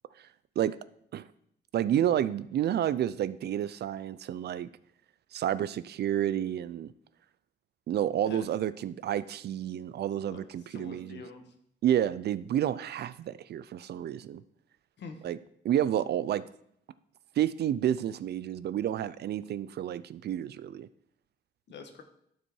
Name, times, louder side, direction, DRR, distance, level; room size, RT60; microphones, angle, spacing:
voice 1, 1.7-4.7 5.3-6.9 7.9-11.2 11.8-14.4 15.2-15.4 15.6-16.4 17.4-20.9, right 11 dB, 55° right, 17 dB, 0.4 m, -30 dB
voice 2, 10.7-11.5 15.0-15.3 21.7-22.0, left 4 dB, 60° left, 6 dB, 1.4 m, -44 dB
12.0 x 4.5 x 4.6 m, 0.71 s
cardioid pair, 90°, 20 cm